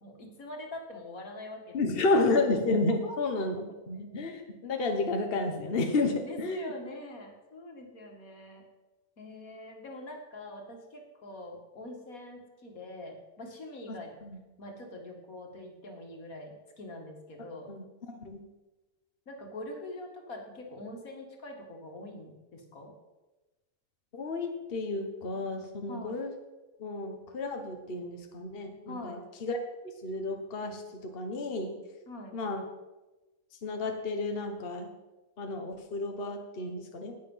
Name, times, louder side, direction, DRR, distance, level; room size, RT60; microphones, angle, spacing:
voice 1, 0.0-2.2 2.9-3.2 6.2-8.6 9.2-14.1 14.6-17.7 19.3-22.9 25.9-26.2 28.9-29.2 32.1-32.4, left 1 dB, 75° left, 2 dB, 2.4 m, -44 dB
voice 2, 1.7-6.7 13.9-14.0 14.2-14.4 17.7-18.4 24.1-26.3 26.8-29.6 30.0-31.8 32.3-32.6 33.6-34.9 35.4-37.2, left 2 dB, 45° left, 4 dB, 1.3 m, -31 dB
18.5 x 6.8 x 5.6 m, 1.1 s
omnidirectional pair, 1.5 m